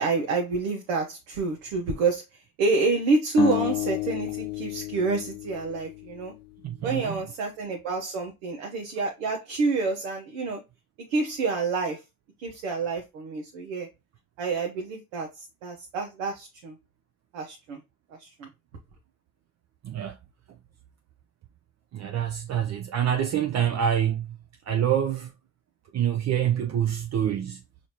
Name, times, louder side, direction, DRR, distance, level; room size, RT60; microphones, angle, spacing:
voice 1, 0.0-2.2 2.6-6.3 6.8-10.6 11.1-12.0 12.4-13.9 14.4-15.3 15.6-16.7 17.3-17.8 18.2-18.5, right 3 dB, 80° right, 0.8 m, -28 dB
sound 1, 3.4-6.5, left 14 dB, 75° left, 0.6 m, -31 dB
voice 2, 6.6-7.2 19.8-20.2 21.9-24.4 24.7-25.3 25.9-27.6, right 9 dB, 40° right, 0.5 m, -26 dB
5.0 x 2.5 x 2.9 m
hypercardioid pair, 50°, 40 cm